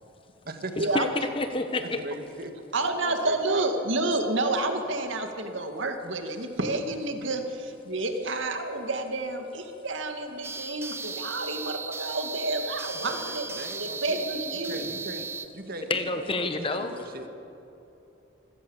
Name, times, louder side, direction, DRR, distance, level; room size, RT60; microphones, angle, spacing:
voice 1, 0.8-2.0 15.9-17.0, left 2 dB, 25° left, 8 dB, 1.1 m, -29 dB
voice 2, 2.0-2.5 3.0-3.9 13.0-15.3 15.5-17.3, right 1 dB, 45° right, 5 dB, 2.0 m, -40 dB
voice 3, 2.7-13.5 13.8-15.0, right 2 dB, 70° right, 5 dB, 2.1 m, -29 dB
sound 1, 10.4-15.5, right 4 dB, 10° right, 0.6 m, -36 dB
26.5 x 17.0 x 7.3 m, 2.9 s
head